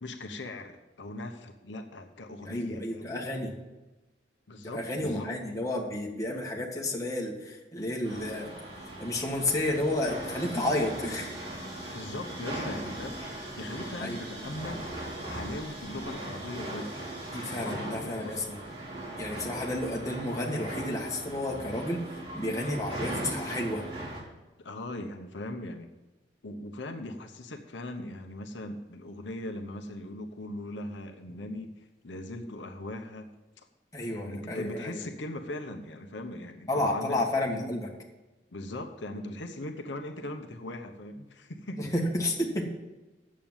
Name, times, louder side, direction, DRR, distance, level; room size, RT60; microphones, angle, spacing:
voice 1, 0.0-3.2 4.5-5.3 11.9-14.9 15.3-16.9 17.5-18.5 19.4-19.7 24.6-25.9 26.4-33.3 34.1-37.2 37.5-37.7 38.5-41.9, left 1 dB, 80° left, 5 dB, 0.9 m, -39 dB
voice 2, 2.4-3.6 4.7-8.5 9.0-11.4 14.0-14.2 17.3-18.6 19.2-22.0 22.3-23.9 33.9-35.0 36.7-37.9 41.8-42.7, left 1 dB, 20° left, -1 dB, 1.8 m, -31 dB
sound 1, 8.0-24.2, right 1 dB, 30° right, 3.2 m, -39 dB
8.9 x 7.5 x 7.3 m, 1.1 s
head